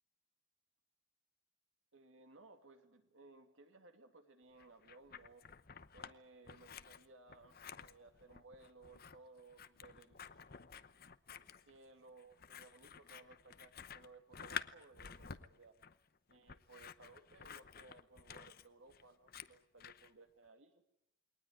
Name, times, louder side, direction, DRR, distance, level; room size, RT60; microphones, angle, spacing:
voice 1, 1.9-5.5 5.9-10.3 11.3-15.8 16.3-20.8, right 3 dB, 80° right, 6 dB, 2.6 m, -61 dB
Scissors, 4.6-6.1 6.4-20.1, left 7 dB, 50° left, 0.8 m, -51 dB
21.5 x 19.0 x 9.5 m, 0.81 s
head